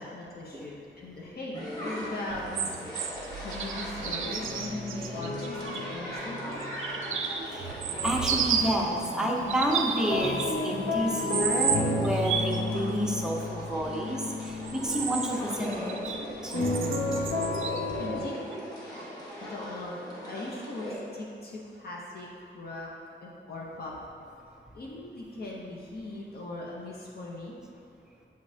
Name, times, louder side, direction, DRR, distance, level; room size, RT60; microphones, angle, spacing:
voice 1, 0.0-6.6 18.0-18.4 19.4-20.0 20.2-22.9 23.2-23.9 24.7-27.6, left 2 dB, 50° left, -3 dB, 0.7 m, -40 dB
sound 1, 1.5-20.9, equal, 20° left, 1.2 m, -40 dB
sound 2, 2.3-5.8 6.5-8.9 9.4-10.8 11.1-12.6 14.4-16.2 16.5-17.8 18.5-18.6, right 7 dB, 90° right, 0.4 m, -33 dB
sound 3, 4.4-8.4 8.7-18.2, left 2 dB, 70° left, 1.2 m, -33 dB
voice 2, 8.0-15.8 16.4-16.5 18.0-18.1, equal, 5° right, -2 dB, 0.5 m, -30 dB
7.6 x 5.1 x 2.7 m, 2.6 s
wide cardioid pair, 175°, 20 cm